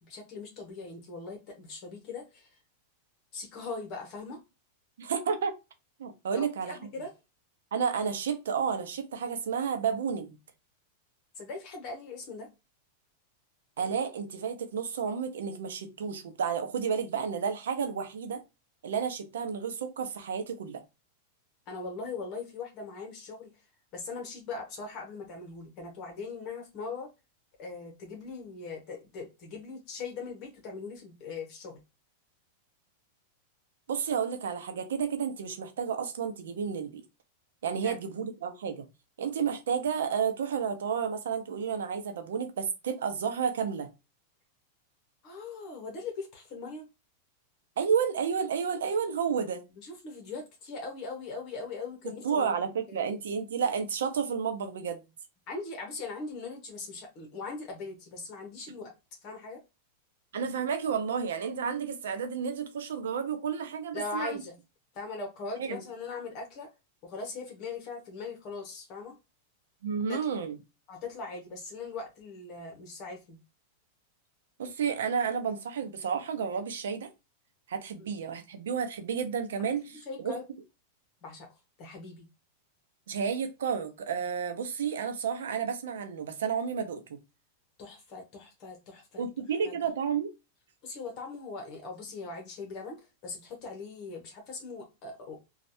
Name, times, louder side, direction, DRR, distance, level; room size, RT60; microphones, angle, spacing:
voice 1, 0.0-2.5 3.3-4.4 6.3-7.1 11.4-12.5 21.7-23.5 23.9-27.1 27.6-31.8 37.8-38.0 45.2-46.9 49.8-52.6 52.9-53.0 55.5-58.9 59.2-59.6 63.9-64.6 64.9-66.7 67.0-69.2 70.1-70.4 70.9-73.4 78.0-78.1 79.6-80.4 81.2-81.5 81.8-82.3 87.8-89.3 89.6-89.7 90.8-95.4, left 4 dB, 40° left, 1.0 m, -40 dB
voice 2, 5.0-5.5 6.0-6.8 7.7-10.4 13.8-18.4 18.8-20.8 33.9-37.0 37.6-38.8 39.2-43.9 47.8-49.6 52.2-55.0 60.3-64.4 65.6-65.8 69.8-70.6 74.6-77.1 77.7-80.3 83.1-87.2 89.2-90.3, right 6 dB, 90° right, 0.7 m, -31 dB
3.2 x 2.4 x 2.6 m
supercardioid pair, 150°, 0 cm